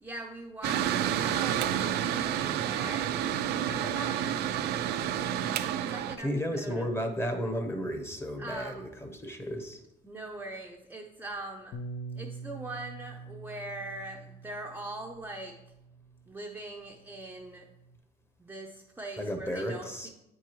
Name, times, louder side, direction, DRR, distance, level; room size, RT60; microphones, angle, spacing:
voice 1, 0.0-3.2 3.5-4.5 4.8-5.2 5.9-6.3 6.6-6.9 8.4-8.9 10.0-11.8 12.2-15.5 16.3-17.7 18.4-20.1, right 2 dB, 10° right, 0 dB, 0.5 m, -41 dB
Mechanical fan, 0.6-6.2, right 10 dB, 75° right, 0.4 m, -29 dB
voice 2, 6.2-9.8 19.2-20.1, equal, 15° left, 5 dB, 0.9 m, -33 dB
Bass guitar, 11.7-16.2 17.0-18.0, right 3 dB, 65° left, 0.5 m, -45 dB
8.8 x 4.7 x 3.0 m, 0.90 s
cardioid pair, 110°, 17 cm